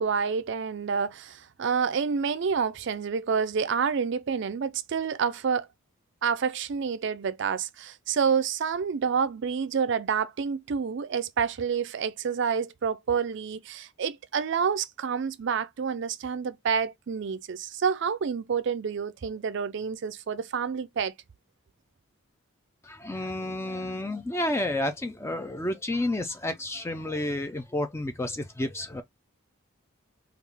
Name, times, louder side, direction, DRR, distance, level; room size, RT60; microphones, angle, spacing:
voice 1, 0.0-5.7 6.2-21.1, right 6 dB, 55° right, 0.4 m, -28 dB
voice 2, 22.8-29.0, left 1 dB, 10° left, 0.3 m, -30 dB
3.5 x 2.3 x 3.3 m
head